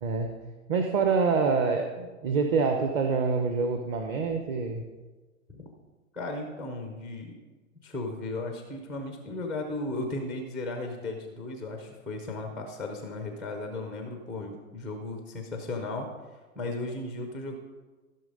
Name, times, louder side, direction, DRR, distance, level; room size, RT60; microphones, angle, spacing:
voice 1, 0.7-4.8, right 5 dB, 25° right, 4 dB, 0.8 m, -26 dB
voice 2, 6.1-7.4 7.8-16.1 16.6-17.5, left 2 dB, ahead, 3 dB, 0.4 m, -35 dB
15.0 x 6.1 x 5.3 m, 1.2 s
hypercardioid pair, 145°, 41 cm